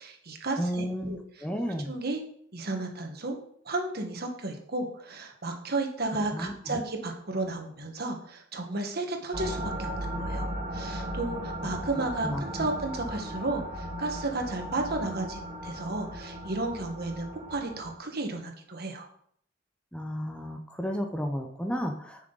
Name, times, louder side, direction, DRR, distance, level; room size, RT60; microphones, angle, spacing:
voice 1, 0.0-1.2 1.9-2.2 2.5-3.4 3.6-19.1, right 2 dB, 55° right, 3 dB, 1.4 m, -33 dB
voice 2, 0.6-1.9 6.3-6.8 12.0-12.4 19.9-22.3, equal, 5° left, 4 dB, 0.7 m, -33 dB
sound 1, 9.3-17.9, equal, 35° right, 1.2 m, -36 dB
9.8 x 6.1 x 4.0 m, 0.65 s
head